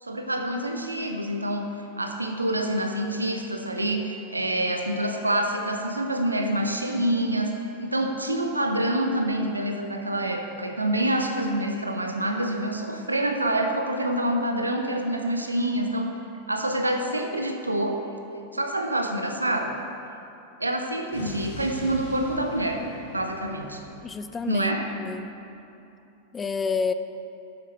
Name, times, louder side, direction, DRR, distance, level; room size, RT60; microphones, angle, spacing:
voice 1, 0.0-1.7 2.0-7.5 7.8-16.1 16.5-18.0 18.5-19.7 20.6-22.9 23.1-23.8 24.5-24.9, right 1 dB, 80° right, 4 dB, 0.8 m, -26 dB
Explosion, 21.1-25.2, left 1 dB, 60° left, 1.9 m, -42 dB
voice 2, 24.0-25.3 26.3-26.9, left 5 dB, 20° left, 10 dB, 0.4 m, -29 dB
11.0 x 8.4 x 3.3 m, 2.8 s
figure-of-eight pair, 90°, 0 cm